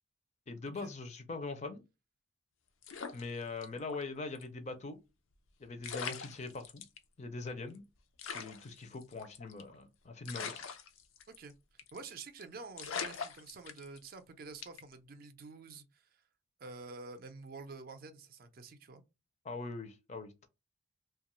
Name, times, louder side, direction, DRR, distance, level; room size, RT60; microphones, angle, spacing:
voice 1, 0.5-1.8 3.1-5.0 5.6-6.8 7.2-7.8 8.2-10.6 19.4-20.5, left 3 dB, 35° left, 0.4 m, -42 dB
sound 1, 2.8-4.0 4.3-4.4 5.5-5.6 5.8-7.0 7.5-7.6 7.7-7.8 8.2-9.7 10.2-11.5 11.8-12.1 12.4-12.5 12.8-14.1 14.6-14.9, left 6 dB, 90° left, 0.5 m, -42 dB
voice 2, 11.9-16.2 16.6-19.0, right 4 dB, 45° right, 0.4 m, -48 dB
2.8 x 2.3 x 3.0 m
head